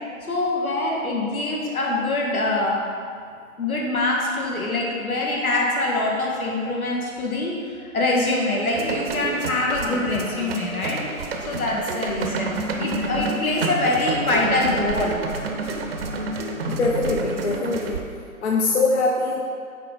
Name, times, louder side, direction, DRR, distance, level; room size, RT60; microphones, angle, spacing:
voice 1, 0.3-2.8 3.6-11.0 11.5-12.5 12.8-15.2, left 2 dB, 80° left, -3 dB, 1.8 m, -24 dB
sound 1, 8.8-18.0, right 3 dB, 45° right, 0.8 m, -29 dB
voice 2, 16.7-18.0 18.4-19.4, left 3 dB, 50° left, -1 dB, 0.9 m, -23 dB
9.2 x 4.0 x 5.2 m, 2.2 s
figure-of-eight pair, 140°, 42 cm